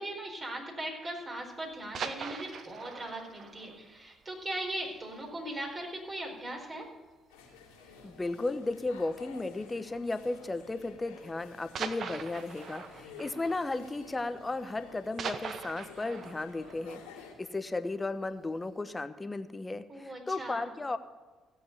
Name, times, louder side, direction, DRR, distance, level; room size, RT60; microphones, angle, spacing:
voice 1, 0.0-6.8 19.9-20.7, right 1 dB, 35° right, 1 dB, 4.7 m, -39 dB
sound 1, 1.7-5.2 5.6-5.7 6.1-6.3 6.6-6.7 7.5-7.9 9.2-9.4 10.3-10.4 11.7-14.5 14.8-17.9 18.4-18.5, right 6 dB, 55° right, 1.0 m, -42 dB
sound 2, 7.3-17.3, left 5 dB, 80° left, 2.5 m, -52 dB
voice 2, 8.0-17.0 17.4-21.0, left 2 dB, 25° left, 11 dB, 1.1 m, -35 dB
16.0 x 7.9 x 6.9 m, 1.3 s
hypercardioid pair, 50°, 0 cm